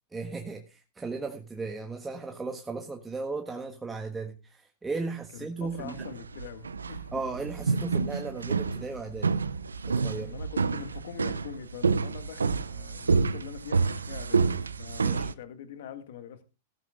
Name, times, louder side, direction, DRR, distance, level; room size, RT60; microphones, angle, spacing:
voice 1, 0.1-6.0 7.1-9.3 9.8-10.3 15.0-15.3, right 4 dB, 10° right, 1.4 m, -36 dB
voice 2, 5.3-7.1 10.1-14.4 14.8-16.4, left 9 dB, 65° left, 2.0 m, -43 dB
sound 1, 5.7-15.3, right 4 dB, 90° right, 0.6 m, -29 dB
15.5 x 13.5 x 2.4 m
hypercardioid pair, 100°, 0 cm